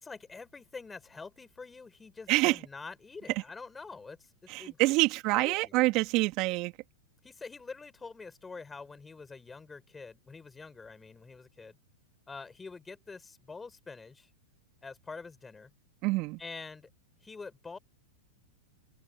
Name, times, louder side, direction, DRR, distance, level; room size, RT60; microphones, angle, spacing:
voice 1, 0.0-4.3 4.6-4.8 5.4-5.7 7.2-11.8 12.3-14.3 14.8-15.7 16.4-16.9 17.2-17.8, left 4 dB, 15° left, 5.5 m, -46 dB
voice 2, 2.3-2.6 4.5-6.7 16.0-16.4, right 22 dB, 45° right, 2.8 m, -26 dB
hypercardioid pair, 110°, 0 cm